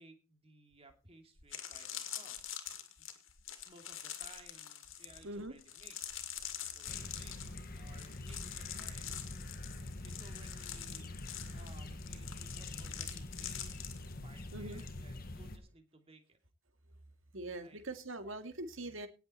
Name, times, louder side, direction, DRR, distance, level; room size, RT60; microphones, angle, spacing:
voice 1, 0.0-2.4 3.0-3.1 3.6-6.0 6.6-7.4 7.7-9.7 10.0-11.2 11.5-16.4 17.5-17.8, right 2 dB, 25° right, 2.6 m, -60 dB
sound 1, 0.9-1.0 1.4-14.9 15.2-15.5, left 10 dB, 65° left, 2.3 m, -45 dB
voice 2, 5.0-5.5 6.0-6.1 6.3-7.4 7.8-8.2 8.8-10.4 11.4-11.9 12.3-12.8 13.6-14.9 17.3-19.1, right 2 dB, 65° right, 2.3 m, -48 dB
sound 2, 6.9-15.6, left 1 dB, 45° left, 1.4 m, -45 dB
18.0 x 7.9 x 4.4 m
head